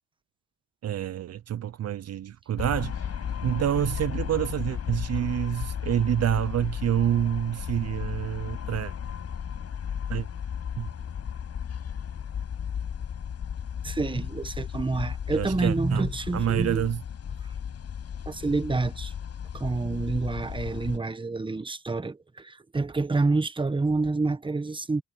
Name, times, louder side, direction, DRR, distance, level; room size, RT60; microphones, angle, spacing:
voice 1, 0.8-3.1 3.4-8.9 10.1-10.3 10.8-10.9 15.3-16.1 16.3-17.0, right 11 dB, 55° right, 0.8 m, -27 dB
sound 1, 2.6-21.0, left 8 dB, 55° left, 6.4 m, -34 dB
voice 2, 13.8-16.8 18.3-19.1 19.5-25.0, right 3 dB, 15° right, 1.2 m, -28 dB
cardioid pair, 90°, 30 cm